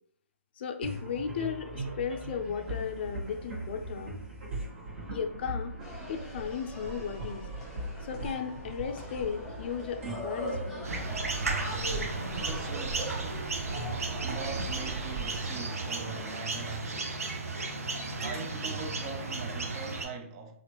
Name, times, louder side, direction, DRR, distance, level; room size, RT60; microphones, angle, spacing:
voice 1, 0.6-4.1 5.1-5.7 6.1-7.5 8.0-10.9, left 7 dB, 45° left, 0.4 m, -35 dB
sound 1, 0.8-16.5, right 1 dB, 55° right, 1.4 m, -40 dB
sound 2, 5.8-16.2, equal, ahead, 1.0 m, -42 dB
sound 3, 10.8-20.1, right 3 dB, 80° right, 0.7 m, -34 dB
voice 2, 12.1-13.5 14.2-17.3 18.2-20.6, right 4 dB, 25° right, 0.4 m, -42 dB
3.3 x 2.5 x 2.9 m
hypercardioid pair, 150°, 8 cm